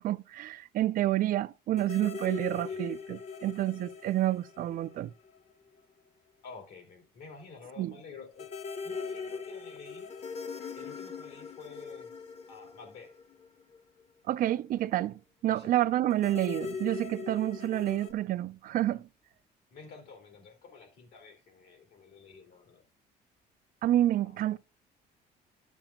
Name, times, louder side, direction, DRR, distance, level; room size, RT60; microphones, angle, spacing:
voice 1, 0.0-5.1 7.8-7.9 14.3-19.1 23.8-24.6, right 13 dB, 55° right, 0.4 m, -29 dB
sound 1, 1.8-5.5 5.8-5.9 8.4-13.8 16.1-18.1, left 5 dB, 40° left, 0.9 m, -41 dB
voice 2, 6.4-8.5 8.8-10.1 10.8-12.1 12.5-13.1 15.4-15.7 19.7-22.8 24.2-24.4, left 5 dB, 80° left, 2.5 m, -50 dB
13.0 x 7.3 x 2.3 m
cardioid pair, 110°, 17 cm